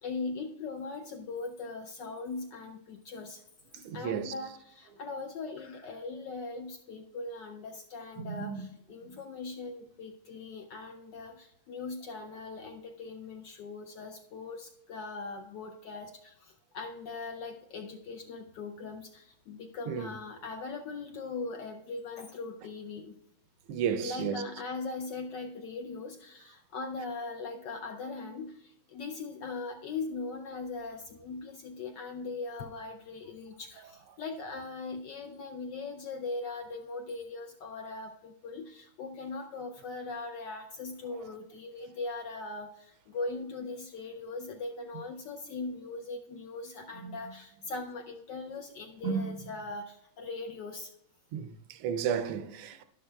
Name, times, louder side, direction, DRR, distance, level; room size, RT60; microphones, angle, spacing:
voice 1, 0.0-3.4 3.8-23.2 24.0-50.9, left 3 dB, 75° left, 1.0 m, -40 dB
voice 2, 3.8-4.3 8.2-8.7 9.1-9.2 19.9-20.1 23.7-24.4 47.0-47.2 49.0-49.4 51.3-52.8, right 7 dB, 85° right, 1.5 m, -33 dB
11.5 x 11.0 x 2.2 m
omnidirectional pair, 2.4 m